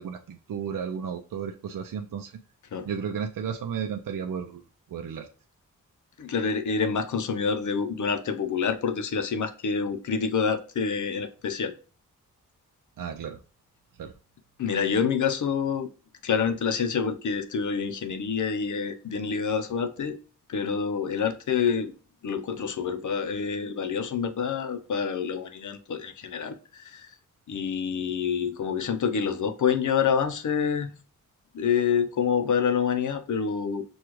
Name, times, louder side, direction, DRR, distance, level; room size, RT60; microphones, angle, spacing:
voice 1, 0.0-2.3 2.8-4.6 4.9-5.3 13.0-13.4 14.0-14.1, right 7 dB, 75° right, 5 dB, 0.5 m, -33 dB
voice 2, 6.2-11.7 14.6-15.9 16.2-20.2 20.5-21.9 22.2-27.1 27.5-31.0 31.5-33.8, left 6 dB, 60° left, 7 dB, 0.6 m, -27 dB
6.2 x 2.3 x 3.0 m, 0.37 s
wide cardioid pair, 115°, 33 cm